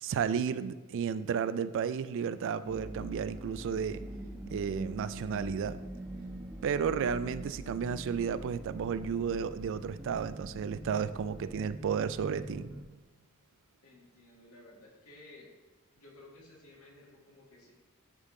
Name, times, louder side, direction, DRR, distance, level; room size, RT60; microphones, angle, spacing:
voice 1, 0.0-4.0 4.5-5.8 6.6-12.7, right 7 dB, 60° right, 14 dB, 0.3 m, -33 dB
sound 1, 2.6-12.8, right 1 dB, 10° right, 0.9 m, -43 dB
voice 2, 13.8-15.5 16.0-17.7, left 2 dB, 75° left, -3 dB, 1.7 m, -55 dB
11.0 x 3.6 x 3.7 m, 1.3 s
head